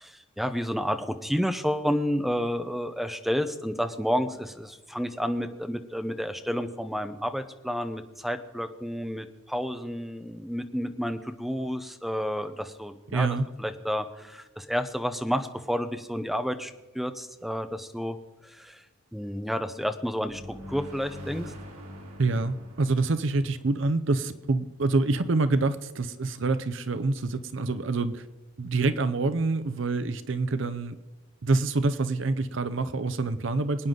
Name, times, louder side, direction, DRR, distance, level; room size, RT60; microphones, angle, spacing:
voice 1, 0.0-13.3 13.6-18.2 18.4-18.8 19.1-20.4 20.7-21.5, equal, ahead, 8 dB, 0.7 m, -30 dB
voice 2, 13.1-13.5 22.2-28.2 28.6-31.0 31.4-33.9, right 3 dB, 60° right, 12 dB, 0.6 m, -26 dB
sound 1, 20.3-24.9, equal, 85° right, 3.0 m, -44 dB
24.5 x 9.4 x 3.9 m, 1.2 s
head